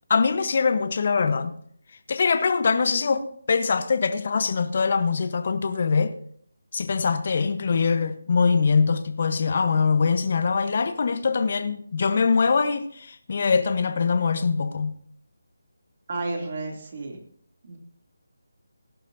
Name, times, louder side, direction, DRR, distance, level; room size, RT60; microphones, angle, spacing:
voice 1, 0.1-1.5 2.1-6.1 6.7-15.0, left 5 dB, 45° left, 1.0 m, -23 dB
voice 2, 16.1-17.2 17.6-17.8, right 3 dB, 45° right, 2.6 m, -31 dB
17.5 x 11.5 x 2.7 m
figure-of-eight pair, 160°, 0 cm